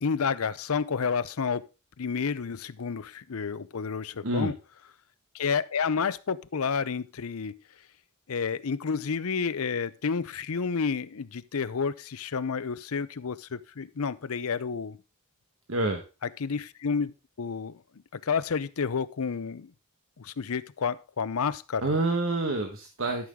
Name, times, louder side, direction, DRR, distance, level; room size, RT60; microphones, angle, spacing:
voice 1, 0.0-1.7 2.0-4.5 5.3-7.6 8.3-15.0 16.4-17.8 18.1-19.7 20.2-22.0, left 5 dB, 75° left, 0.6 m, -30 dB
voice 2, 15.7-16.0 21.8-23.3, right 2 dB, 65° right, 1.4 m, -27 dB
13.0 x 6.3 x 3.7 m
head